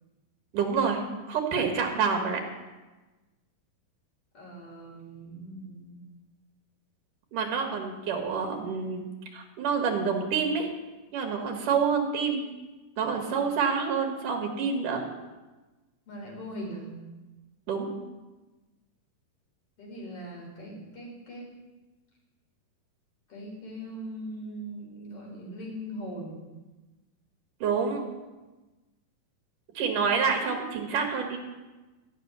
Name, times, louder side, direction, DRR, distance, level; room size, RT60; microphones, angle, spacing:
voice 1, 0.5-1.0 1.3-2.4 7.3-9.0 9.3-10.7 11.1-12.4 13.0-15.0 17.7-17.9 27.6-28.0 29.7-31.4, right 5 dB, 70° right, 3 dB, 3.2 m, -27 dB
voice 2, 4.3-6.0 16.1-16.9 19.8-21.5 23.3-26.4, equal, 40° left, -1 dB, 4.8 m, -40 dB
14.5 x 6.5 x 9.4 m, 1.2 s
omnidirectional pair, 4.0 m